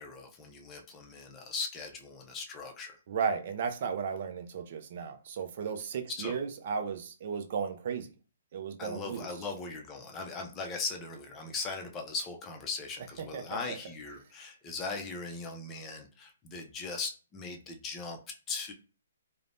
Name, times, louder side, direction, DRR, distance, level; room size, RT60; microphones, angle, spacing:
voice 1, 0.0-3.0 6.1-6.4 8.8-18.2 18.5-18.7, left 4 dB, 20° left, 0.5 m, -39 dB
voice 2, 3.1-8.1 8.5-9.3 13.3-13.4 13.7-13.8, right 6 dB, 50° right, 0.4 m, -34 dB
3.2 x 2.0 x 2.6 m
hypercardioid pair, 150°, 0 cm